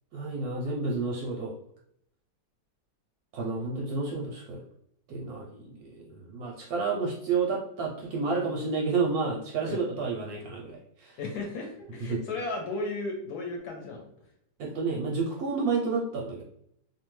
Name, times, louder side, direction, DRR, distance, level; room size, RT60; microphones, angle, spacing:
voice 1, 0.1-1.5 3.3-4.6 5.1-11.2 12.1-12.2 14.6-16.4, right 4 dB, 70° right, -1 dB, 0.9 m, -30 dB
voice 2, 11.2-14.0, left 2 dB, 70° left, 1 dB, 1.0 m, -35 dB
2.8 x 2.2 x 3.0 m, 0.72 s
omnidirectional pair, 1.9 m